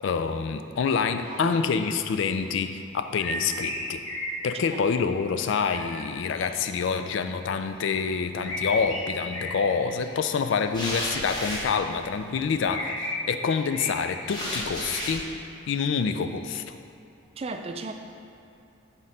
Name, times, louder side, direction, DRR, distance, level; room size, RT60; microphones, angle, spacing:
voice 1, 0.0-4.0 4.4-15.3 15.7-16.6, left 5 dB, 65° left, 8 dB, 0.3 m, -27 dB
sound 1, 1.2-2.2 3.1-4.3 4.7-4.8 5.7-6.5 8.4-10.2 10.7-10.8 11.0-11.1 12.6-13.2 13.4-15.2 16.0-16.6, left 1 dB, 85° left, 1.2 m, -35 dB
sound 2, 8.5-9.0 10.7-12.8 14.3-15.2, equal, 20° left, 1.1 m, -33 dB
voice 2, 17.4-17.9, right 3 dB, 30° right, 5 dB, 0.3 m, -34 dB
6.2 x 3.7 x 5.4 m, 2.7 s
head